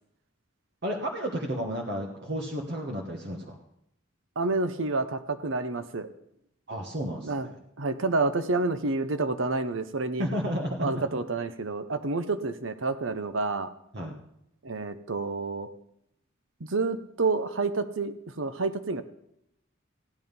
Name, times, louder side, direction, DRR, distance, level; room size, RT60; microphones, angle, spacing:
voice 1, 0.8-3.6 6.7-7.6 10.2-11.1 13.9-14.2, equal, 55° right, 0 dB, 1.4 m, -32 dB
voice 2, 4.4-6.1 7.2-7.5 7.8-10.3 10.8-13.7 14.6-15.7 16.6-19.0, right 3 dB, 80° right, 10 dB, 0.9 m, -29 dB
15.0 x 10.0 x 5.4 m, 0.77 s
head